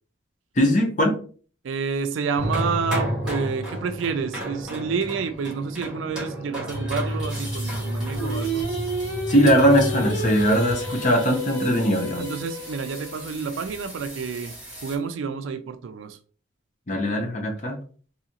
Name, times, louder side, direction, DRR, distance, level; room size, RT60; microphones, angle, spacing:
voice 1, 0.6-1.2 9.3-12.3 16.9-17.8, equal, 40° left, 0.7 m, -20 dB
voice 2, 1.6-8.6 12.2-14.6 14.8-16.2, right 5 dB, 80° right, 0.4 m, -29 dB
sound 1, 2.3-15.0, equal, 5° right, 1.3 m, -32 dB
Singing, 8.1-13.3, right 2 dB, 75° left, 1.2 m, -31 dB
3.8 x 2.7 x 2.8 m
head